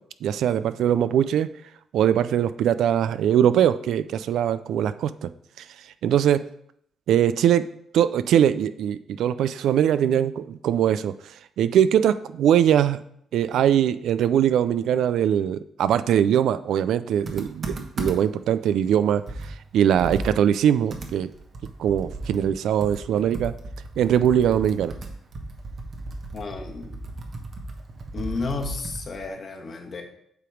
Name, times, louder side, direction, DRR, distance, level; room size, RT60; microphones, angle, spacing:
voice 1, 0.2-1.5 1.9-5.3 6.0-6.4 7.1-7.6 7.9-11.1 11.6-13.0 13.3-19.2 19.7-21.3 21.8-23.5 24.0-24.9, right 9 dB, 75° right, 13 dB, 0.3 m, -21 dB
Computer keyboard, 17.3-18.4 18.9-19.0 19.3-22.6 22.8-29.3, right 2 dB, 50° right, 1.1 m, -35 dB
voice 2, 26.3-27.0 28.1-30.0, left 3 dB, 50° left, 2 dB, 1.3 m, -32 dB
8.1 x 3.0 x 5.0 m, 0.70 s
cardioid pair, 75°, 0 cm